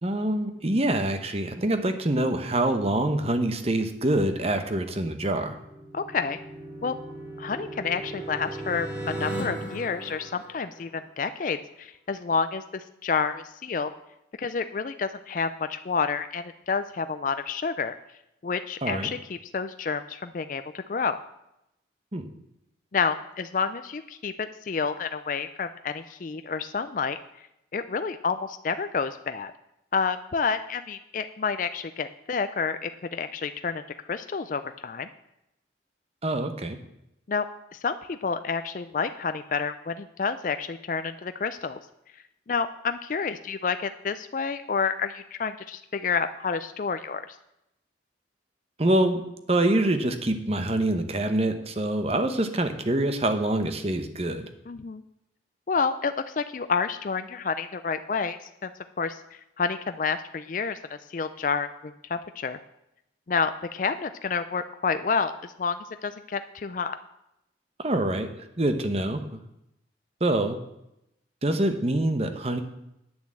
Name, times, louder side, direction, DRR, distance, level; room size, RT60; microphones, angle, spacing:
voice 1, 0.0-5.6 18.8-19.1 22.1-22.3 36.2-36.8 48.8-49.2 49.5-54.5 67.8-68.3 68.6-69.4 70.2-70.6 71.4-72.6, right 1 dB, 35° right, 8 dB, 0.9 m, -25 dB
sound 1, 5.5-11.1, right 1 dB, 10° right, 2.8 m, -37 dB
voice 2, 5.9-6.4 6.8-6.9 7.4-13.9 14.4-17.9 18.4-21.2 22.9-27.2 27.7-29.5 29.9-33.8 34.1-35.1 37.3-37.4 37.8-41.8 42.5-47.4 54.7-55.0 55.7-58.7 59.0-62.6 63.3-65.8 66.0-67.0, left 5 dB, 45° left, 10 dB, 0.4 m, -29 dB
9.0 x 7.3 x 7.5 m, 0.85 s
head